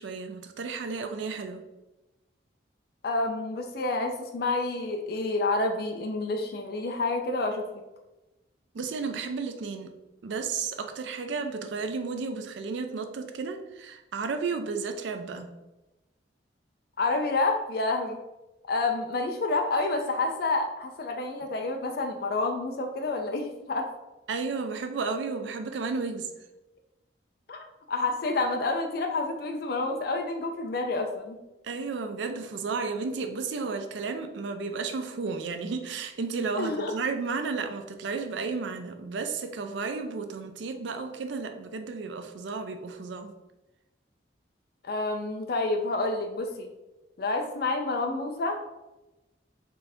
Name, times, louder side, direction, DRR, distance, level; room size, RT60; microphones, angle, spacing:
voice 1, 0.0-1.6 8.7-9.9 10.2-15.5 24.3-26.3 31.6-43.3, right 4 dB, 75° right, 6 dB, 0.4 m, -33 dB
voice 2, 3.0-7.6 17.0-18.2 18.7-23.9 27.5-31.4 36.5-36.9 44.8-46.7 47.2-48.6, left 2 dB, 55° left, 4 dB, 0.4 m, -29 dB
4.3 x 2.6 x 3.4 m, 1.0 s
head